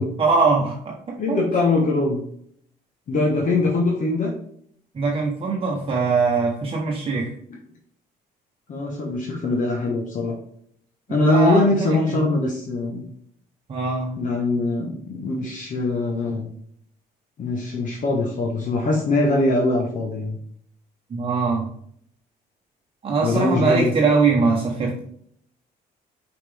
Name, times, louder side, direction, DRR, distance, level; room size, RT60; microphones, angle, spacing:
voice 1, 0.2-1.4 4.9-7.3 11.1-11.6 11.9-12.2 13.7-14.2 21.1-21.7 23.0-25.0, right 4 dB, 35° right, -1 dB, 1.0 m, -22 dB
voice 2, 1.2-2.2 3.1-4.3 7.5-7.6 8.7-10.3 11.1-13.0 14.2-16.5 17.4-20.4 23.2-23.9, left 2 dB, 50° left, 0 dB, 1.2 m, -22 dB
5.7 x 5.0 x 3.4 m, 0.65 s
cardioid pair, 110°, 17 cm